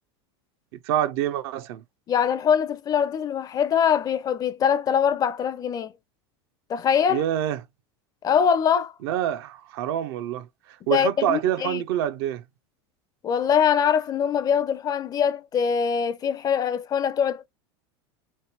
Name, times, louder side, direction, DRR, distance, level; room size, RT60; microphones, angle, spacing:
voice 1, 0.8-1.8 7.1-7.6 9.0-12.4, right 11 dB, 70° right, 0.6 m, -26 dB
voice 2, 2.1-5.9 6.7-7.2 8.2-8.9 10.9-11.8 13.2-17.5, left 7 dB, 30° left, 0.4 m, -23 dB
3.2 x 2.9 x 2.7 m
supercardioid pair, 125°, 14 cm